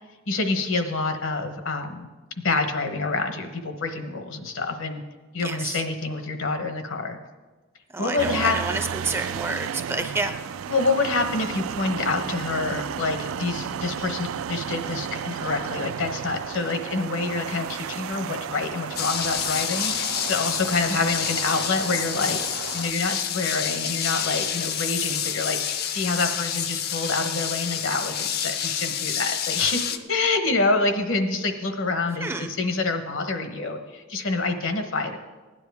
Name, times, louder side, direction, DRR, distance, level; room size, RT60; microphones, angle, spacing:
voice 1, 0.3-2.1 2.4-5.0 5.3-7.2 8.0-8.6 10.7-22.4 22.7-35.2, left 3 dB, 70° left, 7 dB, 1.0 m, -27 dB
voice 2, 5.4-5.8 7.9-10.4 32.2-32.5, right 3 dB, 10° right, 7 dB, 0.4 m, -29 dB
sound 1, 8.2-22.9, right 8 dB, 80° right, 0.3 m, -33 dB
sound 2, 19.0-30.0, left 8 dB, 50° left, 0.5 m, -28 dB
16.0 x 9.9 x 3.5 m, 1.3 s
head